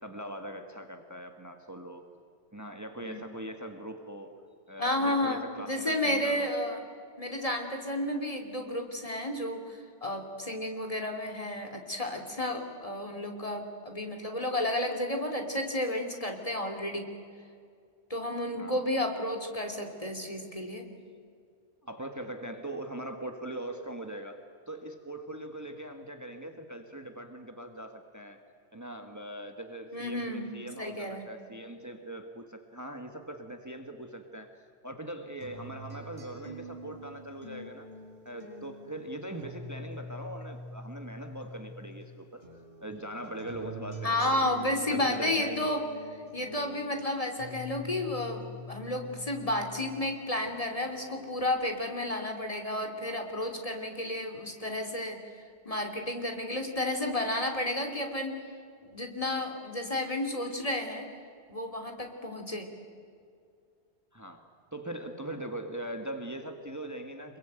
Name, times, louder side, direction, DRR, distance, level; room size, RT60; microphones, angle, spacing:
voice 1, 0.0-2.1 2.5-4.3 4.7-6.6 18.5-18.8 21.8-24.4 24.7-28.4 28.7-37.9 38.2-45.7 64.1-67.4, right 1 dB, 15° right, 5 dB, 1.6 m, -41 dB
voice 2, 4.8-6.8 7.2-17.1 18.1-20.9 29.9-30.5 30.8-31.3 44.0-45.8 46.3-55.2 55.6-58.4 58.8-61.1 61.5-62.7, left 1 dB, 35° left, 4 dB, 3.1 m, -32 dB
sound 1, 35.4-42.0 42.4-50.0 50.4-51.4, equal, 40° right, 5.7 m, -45 dB
26.5 x 22.5 x 9.2 m, 2.3 s
omnidirectional pair, 1.1 m